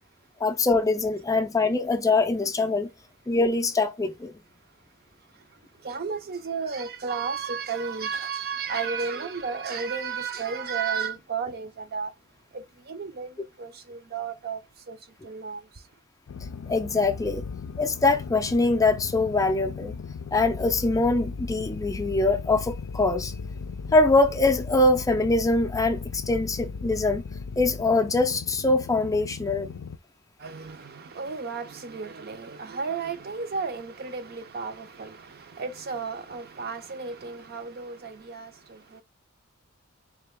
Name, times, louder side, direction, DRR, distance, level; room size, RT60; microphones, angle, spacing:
voice 1, 0.4-2.9 3.3-4.3 16.7-17.4 17.8-19.9 20.3-23.3 23.9-27.2 27.6-29.7, left 2 dB, 15° left, 0.4 m, -23 dB
voice 2, 5.8-12.1 12.5-14.6 14.9-15.0 15.2-15.6 30.4-39.0, right 5 dB, 45° right, 0.5 m, -33 dB
sound 1, 16.3-30.0, left 5 dB, 80° left, 0.4 m, -37 dB
3.8 x 3.3 x 3.5 m
head